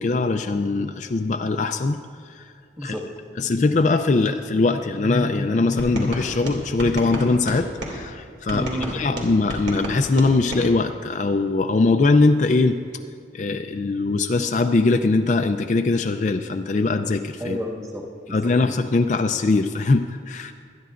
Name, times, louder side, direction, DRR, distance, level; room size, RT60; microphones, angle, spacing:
voice 1, 0.0-2.0 2.3-2.5 2.8-2.9 3.4-8.7 8.9-12.8 13.3-17.6 18.3-20.5, left 3 dB, 40° left, 6 dB, 0.4 m, -21 dB
sound 1, 5.8-8.0 8.5-10.7, right 1 dB, 85° right, 2.5 m, -32 dB
voice 2, 8.5-9.0 17.4-18.8, equal, 20° right, -2 dB, 1.6 m, -31 dB
24.5 x 10.5 x 2.5 m, 2.2 s
head